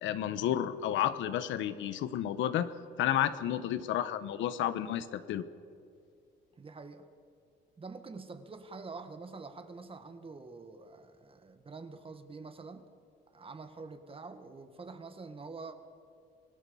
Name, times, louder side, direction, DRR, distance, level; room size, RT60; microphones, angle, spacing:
voice 1, 0.0-2.7 3.0-5.4, left 11 dB, 85° left, 12 dB, 1.2 m, -31 dB
voice 2, 6.6-7.1 7.8-12.9 13.3-15.8, right 4 dB, 30° right, 9 dB, 1.8 m, -46 dB
26.0 x 18.5 x 7.1 m, 2.4 s
cardioid pair, 110°, 19 cm